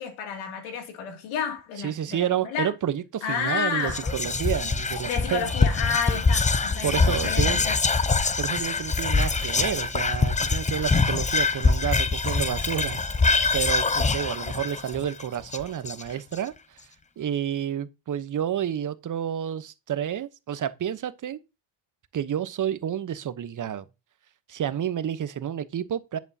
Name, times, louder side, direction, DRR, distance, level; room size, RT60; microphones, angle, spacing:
voice 1, 0.0-2.7 3.2-4.1 5.0-7.0 7.2-7.8, left 7 dB, 80° left, 2.6 m, -31 dB
voice 2, 1.8-5.5 6.8-7.6 8.4-13.0 13.5-16.5 17.2-21.4 22.1-23.8 24.5-26.2, right 9 dB, 40° right, 1.0 m, -30 dB
Whispering, 3.8-16.3, left 4 dB, 15° left, 0.7 m, -24 dB
10.5 x 8.3 x 2.8 m
supercardioid pair, 80°, 48 cm